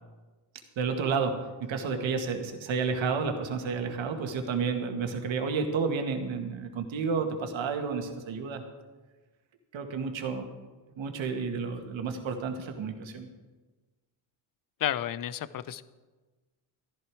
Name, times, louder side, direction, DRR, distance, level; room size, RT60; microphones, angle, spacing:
voice 1, 0.8-8.6 9.7-10.5 11.0-13.3, right 5 dB, 65° right, 5 dB, 2.0 m, -31 dB
voice 2, 14.8-15.8, left 11 dB, 45° left, 16 dB, 0.7 m, -31 dB
13.5 x 11.5 x 4.8 m, 1.3 s
cardioid pair, 80°, 49 cm